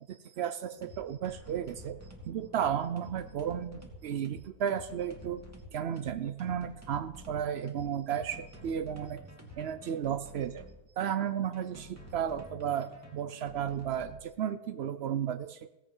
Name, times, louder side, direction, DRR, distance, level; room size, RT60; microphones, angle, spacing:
voice 1, 0.1-2.0 2.2-5.4 5.7-9.2 9.6-10.7 11.0-15.7, right 9 dB, 90° right, 12 dB, 0.5 m, -33 dB
sound 1, 0.7-10.8 11.5-14.2, equal, 10° right, 1.8 m, -50 dB
16.0 x 8.6 x 5.4 m, 0.96 s
omnidirectional pair, 1.8 m